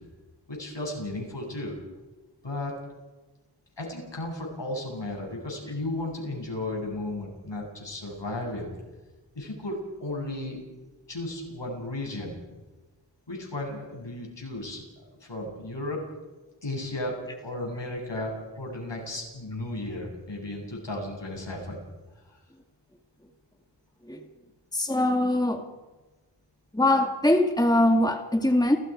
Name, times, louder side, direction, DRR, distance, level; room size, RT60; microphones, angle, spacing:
voice 1, 0.5-1.7 2.4-2.7 3.8-8.6 9.3-10.6 11.1-12.3 13.3-14.8 15.2-16.0 16.6-17.2 17.4-21.8, left 2 dB, 75° left, 0 dB, 7.7 m, -34 dB
voice 2, 24.7-25.6 26.7-28.8, left 1 dB, 10° left, 4 dB, 2.0 m, -22 dB
30.0 x 18.0 x 5.1 m, 1.1 s
wide cardioid pair, 55°, 43 cm